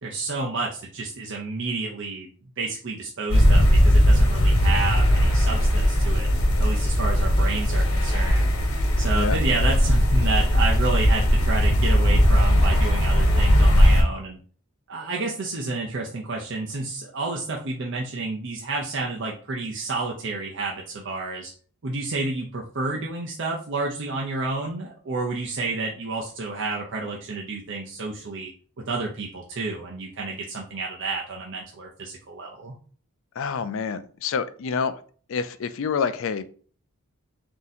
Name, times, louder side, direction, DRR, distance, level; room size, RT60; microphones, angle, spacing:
voice 1, 0.0-2.3 2.6-6.3 6.6-8.5 9.0-14.4 14.9-21.5 21.8-28.5 28.8-32.8, right 3 dB, 55° right, -1 dB, 0.6 m, -30 dB
sound 1, 3.3-14.0, equal, 85° left, 1.2 m, -19 dB
voice 2, 33.4-34.9 35.3-36.5, left 5 dB, 60° left, 11 dB, 0.4 m, -27 dB
3.7 x 2.8 x 4.1 m, 0.43 s
head